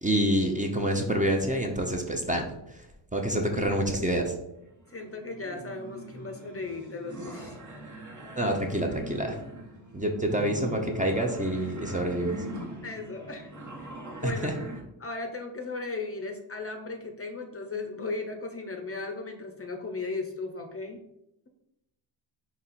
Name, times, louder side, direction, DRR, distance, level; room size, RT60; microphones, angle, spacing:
voice 1, 0.0-2.5 3.1-4.3 8.4-9.4 9.9-12.4 14.2-14.5, right 1 dB, 15° right, 2 dB, 0.6 m, -27 dB
voice 2, 3.3-3.8 4.9-7.6 12.8-14.5 15.0-21.0, left 3 dB, 30° left, 4 dB, 0.6 m, -37 dB
sound 1, 4.6-14.8, right 1 dB, 40° right, 1.0 m, -42 dB
4.2 x 3.0 x 4.1 m, 0.86 s
cardioid pair, 70°, 48 cm